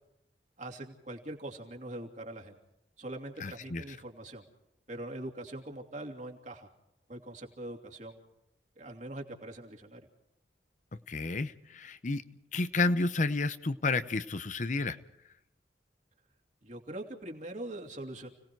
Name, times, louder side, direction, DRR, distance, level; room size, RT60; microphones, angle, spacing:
voice 1, 0.6-2.6 3.0-4.4 4.9-6.7 7.1-8.2 8.8-10.1 16.6-18.3, right 1 dB, 45° right, 2 dB, 2.8 m, -42 dB
voice 2, 3.4-3.8 11.1-12.2 12.5-15.0, left 3 dB, 45° left, 12 dB, 0.8 m, -31 dB
30.0 x 18.5 x 4.6 m, 0.86 s
head